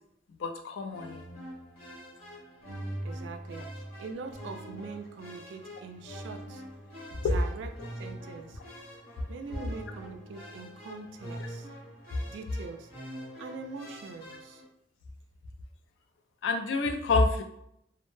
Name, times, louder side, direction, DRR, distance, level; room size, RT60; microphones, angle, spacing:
voice 1, 0.4-1.2 7.2-7.3 16.4-17.4, left 3 dB, 85° left, 5 dB, 0.4 m, -27 dB
sound 1, 0.9-14.6, equal, 50° left, 1.0 m, -44 dB
voice 2, 3.0-6.6 7.1-7.7 8.0-8.6 9.3-11.7 12.3-12.9 13.4-14.6, right 4 dB, 85° right, 6 dB, 0.3 m, -43 dB
2.0 x 2.0 x 3.0 m, 0.76 s
head